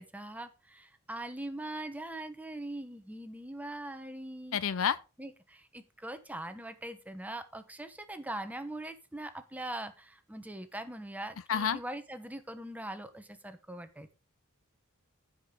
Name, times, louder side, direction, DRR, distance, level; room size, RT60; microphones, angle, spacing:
voice 1, 0.0-4.6 5.2-14.1, right 1 dB, 5° right, 0.9 m, -42 dB
voice 2, 4.5-5.0 11.5-11.8, left 7 dB, 60° left, 0.5 m, -28 dB
15.5 x 5.2 x 3.7 m
head